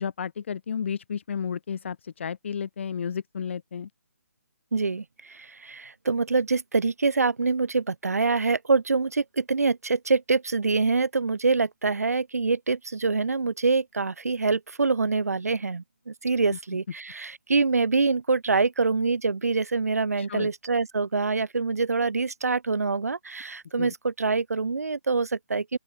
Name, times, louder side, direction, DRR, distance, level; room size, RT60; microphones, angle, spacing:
voice 1, 0.0-3.9 20.2-20.5 23.8-23.9, left 7 dB, 50° left, 4.1 m, -32 dB
voice 2, 4.7-25.8, right 4 dB, 90° right, 3.4 m, -25 dB
open air
hypercardioid pair, 160°, 8 cm